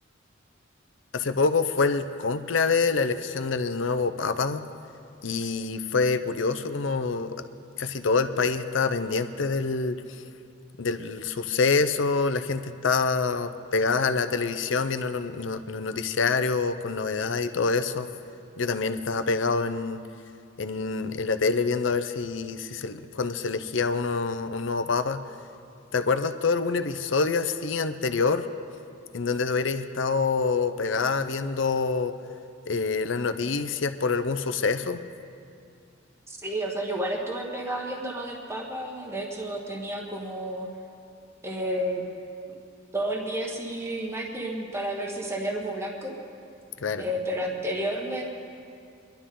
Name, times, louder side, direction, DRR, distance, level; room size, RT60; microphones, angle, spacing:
voice 1, 1.1-4.6 5.2-7.4 7.8-10.0 10.8-18.1 18.6-20.0 20.6-25.2 25.9-28.4 29.1-32.2 32.7-35.0 46.8-47.0, left 4 dB, 70° left, 10 dB, 0.7 m, -26 dB
voice 2, 36.3-40.7 41.4-42.0 42.9-46.1 47.0-48.2, right 1 dB, 15° right, -1 dB, 1.4 m, -31 dB
25.5 x 11.5 x 3.8 m, 2.4 s
head